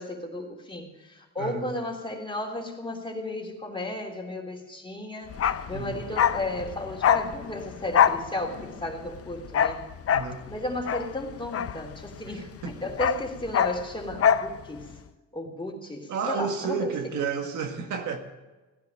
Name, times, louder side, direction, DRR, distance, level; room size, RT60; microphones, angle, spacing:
voice 1, 0.0-5.3 5.7-9.8 10.5-14.9 15.3-16.9, left 1 dB, 15° left, 1 dB, 3.4 m, -34 dB
voice 2, 1.4-1.7 5.7-6.0 10.1-10.4 12.2-12.8 16.1-18.2, right 6 dB, 80° right, 5 dB, 1.7 m, -31 dB
Bark, 5.3-12.3 12.6-14.5 14.8-14.9, left 8 dB, 50° left, 0.7 m, -25 dB
15.5 x 10.5 x 6.4 m, 1.2 s
cardioid pair, 90°, 30 cm